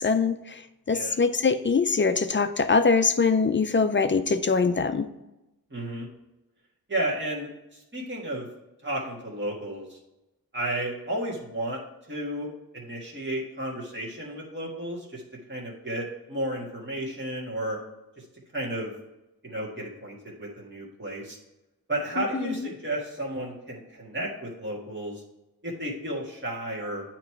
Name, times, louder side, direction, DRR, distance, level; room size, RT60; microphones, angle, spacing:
voice 1, 0.0-5.1 22.2-22.4, left 4 dB, 35° left, 10 dB, 0.4 m, -23 dB
voice 2, 5.7-6.1 6.9-8.5 8.8-10.0 10.5-11.8 12.1-15.2 15.5-17.8 18.5-18.9 19.4-21.4 21.9-25.2 25.6-27.0, right 1 dB, 30° right, -4 dB, 1.7 m, -33 dB
9.1 x 3.0 x 4.6 m, 0.95 s
wide cardioid pair, 55°, 36 cm